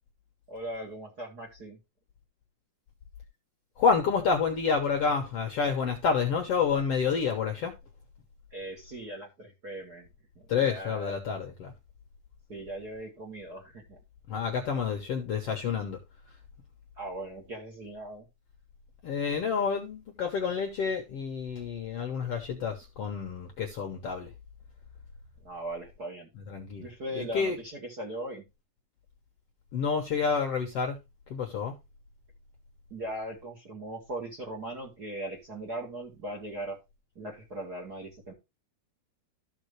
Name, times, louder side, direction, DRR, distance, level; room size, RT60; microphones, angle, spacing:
voice 1, 0.5-1.8 8.5-10.1 10.4-11.1 12.5-14.0 17.0-18.3 25.4-26.3 26.8-28.4 32.9-36.8 37.2-38.3, right 1 dB, 35° right, 2.0 m, -39 dB
voice 2, 3.8-7.7 10.5-11.7 14.3-16.0 19.0-24.3 26.5-26.9 27.1-27.5 29.7-31.0 31.3-31.8, left 6 dB, 60° left, 1.7 m, -29 dB
14.0 x 5.3 x 3.2 m
omnidirectional pair, 4.2 m